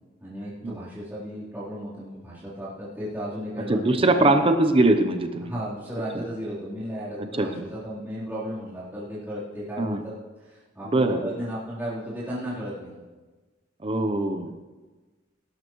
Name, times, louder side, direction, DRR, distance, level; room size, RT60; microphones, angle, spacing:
voice 1, 0.2-4.4 5.4-10.1 10.4-12.9, equal, 10° right, -12 dB, 3.6 m, -35 dB
voice 2, 3.7-5.5 7.4-7.5 9.8-10.0 10.9-11.2 13.8-14.5, right 2 dB, 30° right, 7 dB, 0.7 m, -21 dB
18.5 x 12.0 x 3.1 m, 1.3 s
head